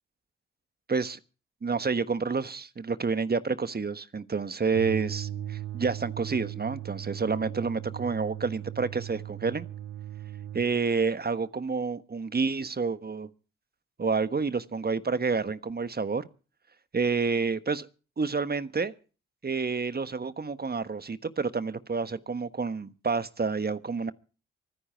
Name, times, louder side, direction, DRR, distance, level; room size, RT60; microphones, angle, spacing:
voice 1, 0.9-1.2 1.6-9.7 10.5-13.3 14.0-16.3 16.9-17.9 18.2-18.9 19.4-24.1, right 4 dB, 30° right, 1.3 m, -29 dB
sound 1, 4.7-10.7, right 11 dB, 80° right, 1.8 m, -38 dB
24.5 x 10.0 x 4.6 m
hypercardioid pair, 40°, 31 cm